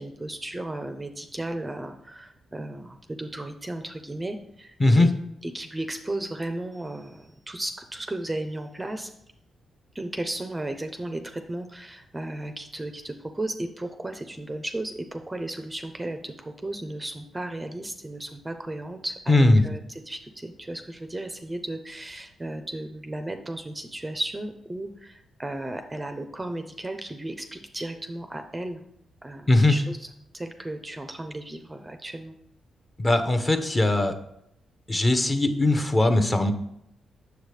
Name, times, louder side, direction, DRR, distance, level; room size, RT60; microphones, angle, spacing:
voice 1, 0.0-5.1 5.4-9.1 9.9-28.9 29.2-30.1 30.3-32.4, right 1 dB, 15° right, 7 dB, 0.5 m, -35 dB
voice 2, 19.3-19.6 29.5-29.7 33.0-34.1 34.9-36.5, left 2 dB, 20° left, 8 dB, 0.7 m, -20 dB
8.0 x 6.8 x 3.2 m, 0.77 s
cardioid pair, 115°, 0 cm